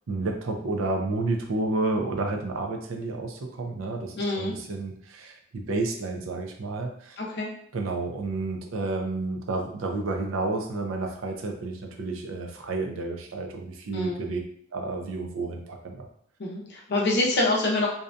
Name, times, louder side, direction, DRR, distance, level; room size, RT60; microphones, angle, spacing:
voice 1, 0.1-7.2 7.7-14.4 14.7-16.1, right 3 dB, 70° right, 3 dB, 0.5 m, -30 dB
voice 2, 4.1-4.5 7.2-7.5 13.9-14.2 16.4-17.9, left 2 dB, 55° left, -1 dB, 0.6 m, -26 dB
2.6 x 2.2 x 2.5 m, 0.66 s
head